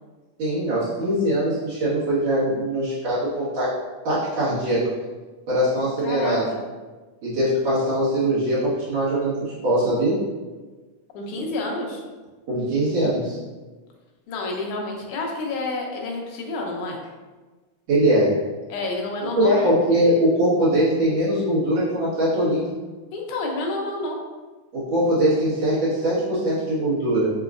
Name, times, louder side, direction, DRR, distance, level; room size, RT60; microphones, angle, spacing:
voice 1, 0.4-3.7 4.0-4.9 5.5-6.5 7.2-10.2 12.5-13.4 17.9-18.4 19.4-22.6 24.7-27.3, right 1 dB, 65° right, -11 dB, 2.8 m, -21 dB
voice 2, 6.0-6.6 11.1-12.0 14.3-17.0 18.7-19.7 23.1-24.2, left 2 dB, 85° left, -1 dB, 2.2 m, -29 dB
6.0 x 2.9 x 2.5 m, 1.3 s
omnidirectional pair, 3.3 m